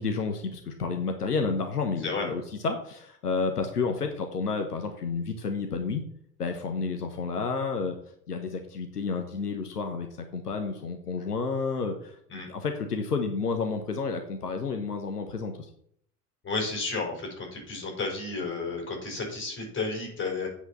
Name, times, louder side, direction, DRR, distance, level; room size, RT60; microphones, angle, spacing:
voice 1, 0.0-6.0 6.4-8.0 8.3-10.1 10.3-15.7, left 4 dB, 80° left, 5 dB, 1.1 m, -30 dB
voice 2, 2.0-2.3 12.3-12.5 16.4-20.5, left 3 dB, 25° left, 0 dB, 5.2 m, -32 dB
8.1 x 6.2 x 7.2 m, 0.68 s
figure-of-eight pair, 70°, 46 cm